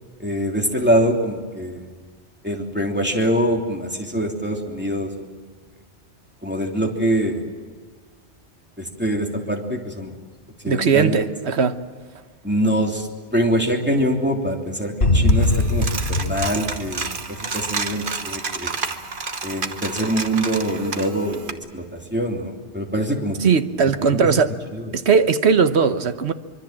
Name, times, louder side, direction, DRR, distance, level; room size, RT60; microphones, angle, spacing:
voice 1, 0.2-1.9 2.4-5.1 6.4-7.4 8.8-10.1 10.6-11.2 12.4-17.2 17.5-18.7 19.4-23.4 24.1-24.2 24.7-24.9, equal, 10° right, 3.1 m, -24 dB
voice 2, 10.7-11.8 23.4-24.5 24.9-26.3, right 6 dB, 70° right, 1.4 m, -18 dB
sound 1, 15.0-17.8, left 2 dB, 65° left, 3.5 m, -21 dB
Coin (dropping), 15.3-21.5, right 4 dB, 50° right, 1.4 m, -30 dB
25.0 x 24.0 x 7.5 m
omnidirectional pair, 1.1 m